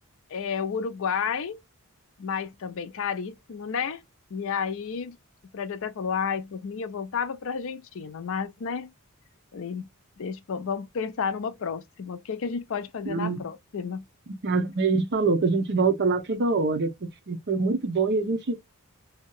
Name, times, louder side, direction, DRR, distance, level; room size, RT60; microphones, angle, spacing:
voice 1, 0.3-1.6 2.2-4.0 4.3-5.2 5.5-8.9 9.5-9.9 10.2-14.0, left 6 dB, 60° left, 0.5 m, -31 dB
voice 2, 13.1-13.4 14.3-18.6, right 4 dB, 50° right, 0.6 m, -25 dB
2.7 x 2.3 x 2.9 m
head